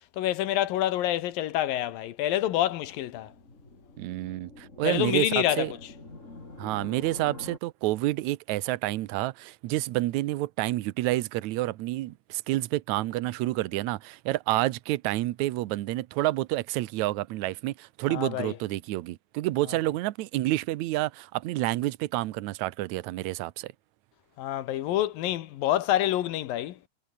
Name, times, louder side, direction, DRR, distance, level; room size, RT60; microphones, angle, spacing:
voice 1, 0.1-3.3 4.8-5.8 18.1-18.6 24.4-26.8, left 13 dB, 80° left, 2.8 m, -27 dB
sound 1, 2.8-7.6, left 2 dB, 20° left, 4.3 m, -46 dB
voice 2, 4.0-5.7 6.6-23.7, right 17 dB, 75° right, 1.8 m, -29 dB
omnidirectional pair, 4.2 m